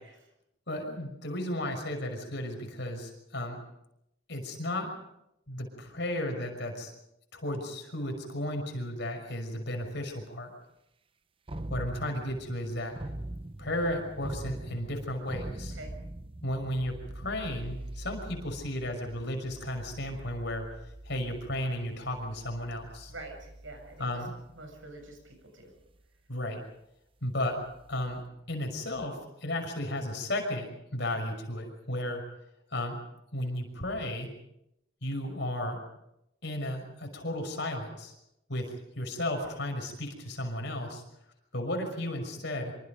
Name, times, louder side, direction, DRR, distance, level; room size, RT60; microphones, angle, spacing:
voice 1, 0.7-3.6 4.3-4.9 5.5-6.9 7.3-10.5 11.7-13.0 13.6-15.8 16.4-20.6 21.0-23.1 24.0-24.3 26.3-26.6 27.2-27.6 27.9-32.2 32.7-33.0 33.3-34.3 35.0-35.8 36.4-38.1 38.5-41.0 41.5-42.8, left 1 dB, 60° left, 4 dB, 6.0 m, -34 dB
sound 1, 9.8-9.9 11.5-25.2 25.7-26.1 27.5-29.1, right 1 dB, 25° right, 0.8 m, -43 dB
voice 2, 15.6-16.0 23.1-24.3 24.5-25.7, right 2 dB, 70° right, 4 dB, 7.5 m, -46 dB
26.0 x 25.5 x 5.3 m, 0.83 s
head